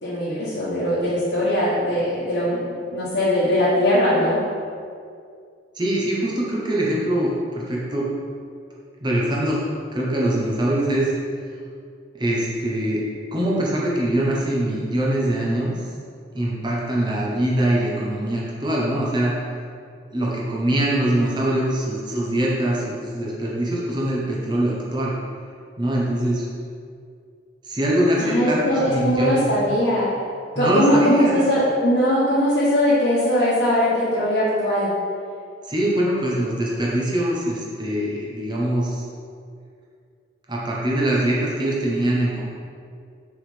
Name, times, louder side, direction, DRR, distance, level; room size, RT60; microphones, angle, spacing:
voice 1, 0.0-2.6 2.9-4.4 28.2-30.1 30.6-34.9, left 1 dB, 65° left, -11 dB, 1.5 m, -20 dB
voice 2, 5.7-8.1 9.0-9.6 9.9-11.1 12.1-13.0 13.3-15.7 16.3-19.3 20.1-25.2 25.8-26.5 27.7-29.5 30.5-31.4 35.7-39.0 40.5-42.4, right 1 dB, 25° right, -5 dB, 1.0 m, -23 dB
6.2 x 3.9 x 5.1 m, 2.3 s
head